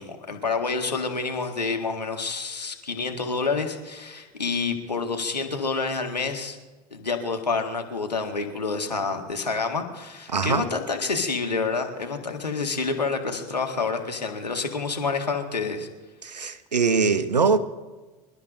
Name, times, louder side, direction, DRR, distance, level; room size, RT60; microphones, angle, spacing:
voice 1, 0.0-6.6 6.9-15.9, left 4 dB, 85° left, 1.8 m, -28 dB
voice 2, 10.3-10.7 16.2-17.6, right 5 dB, 85° right, 0.9 m, -22 dB
27.0 x 13.5 x 2.6 m
figure-of-eight pair, 80°, 21 cm